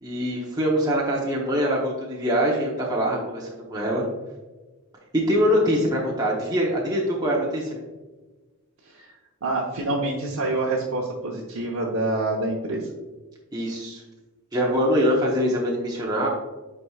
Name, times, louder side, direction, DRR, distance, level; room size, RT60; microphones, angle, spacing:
voice 1, 0.0-4.1 5.1-7.8 13.5-14.0 14.5-16.3, equal, 20° right, -4 dB, 0.9 m, -23 dB
voice 2, 9.4-12.9, right 2 dB, 85° right, -3 dB, 0.9 m, -27 dB
8.4 x 4.8 x 2.4 m, 1.2 s
head